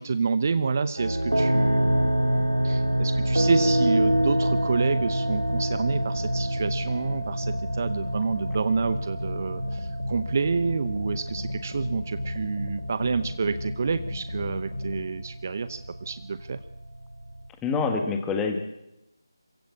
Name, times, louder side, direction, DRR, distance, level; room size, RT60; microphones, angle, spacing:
voice 1, 0.0-2.4 2.6-16.6, right 5 dB, 35° right, 12 dB, 0.8 m, -28 dB
sound 1, 1.0-17.5, right 1 dB, 90° right, 2.4 m, -27 dB
sound 2, 1.4-15.0, left 2 dB, 65° left, 4.2 m, -35 dB
voice 2, 17.6-18.6, left 4 dB, 5° left, 5 dB, 1.6 m, -26 dB
26.0 x 16.0 x 8.6 m, 0.91 s
figure-of-eight pair, 165°, 2 cm